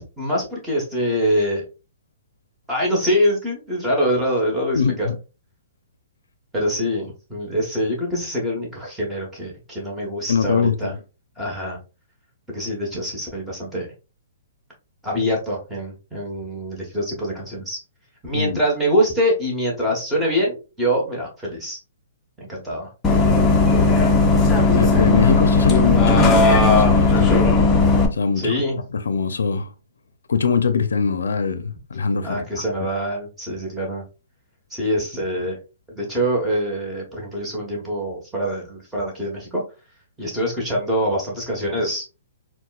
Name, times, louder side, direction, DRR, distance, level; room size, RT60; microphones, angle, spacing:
voice 1, 0.0-1.6 2.7-5.1 6.5-10.9 11.4-11.8 12.5-13.9 15.0-17.8 18.2-21.8 22.4-22.9 28.4-28.8 32.2-34.0 34.7-35.6 35.9-39.6 40.2-42.1, equal, 5° right, 1.2 m, -24 dB
voice 2, 4.7-5.2 10.3-10.9 18.3-18.6 24.8-27.4 28.1-28.5 28.9-29.7 30.3-32.9, left 5 dB, 85° left, 0.4 m, -22 dB
Bus, 23.0-28.1, left 3 dB, 15° left, 0.5 m, -16 dB
4.1 x 2.1 x 2.3 m
hypercardioid pair, 145°, 0 cm